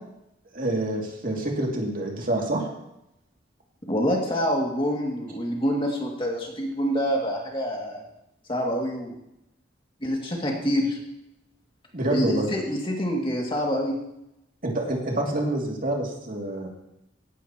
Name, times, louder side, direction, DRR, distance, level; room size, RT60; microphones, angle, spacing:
voice 1, 0.5-2.7 11.9-12.5 14.6-16.7, right 1 dB, 50° right, -1 dB, 2.6 m, -27 dB
voice 2, 3.9-8.0 8.5-9.1 10.0-11.0 12.1-14.0, equal, 30° left, -1 dB, 2.3 m, -26 dB
17.0 x 11.5 x 3.0 m, 0.83 s
head